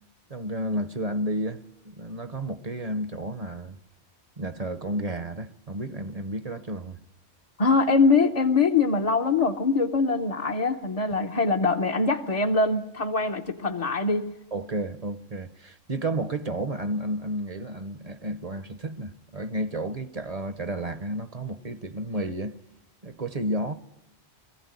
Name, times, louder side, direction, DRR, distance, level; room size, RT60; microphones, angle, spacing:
voice 1, 0.3-3.8 4.4-7.0 14.5-22.6 23.0-23.7, right 1 dB, 40° right, 0.9 m, -32 dB
voice 2, 7.6-14.4, left 4 dB, 35° left, 0.9 m, -23 dB
22.0 x 15.5 x 9.5 m
omnidirectional pair, 1.1 m